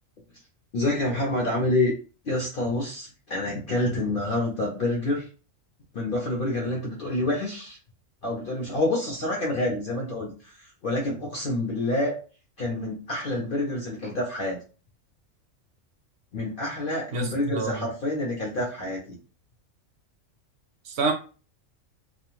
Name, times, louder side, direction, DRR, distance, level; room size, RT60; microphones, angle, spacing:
voice 1, 0.7-1.9 2.2-5.3 5.9-7.8 8.2-12.1 12.6-14.6 16.3-19.2, left 1 dB, 55° left, 0.7 m, -27 dB
voice 2, 17.1-17.8 20.9-21.1, right 4 dB, 65° right, 0.7 m, -27 dB
2.4 x 2.2 x 3.0 m
omnidirectional pair, 1.4 m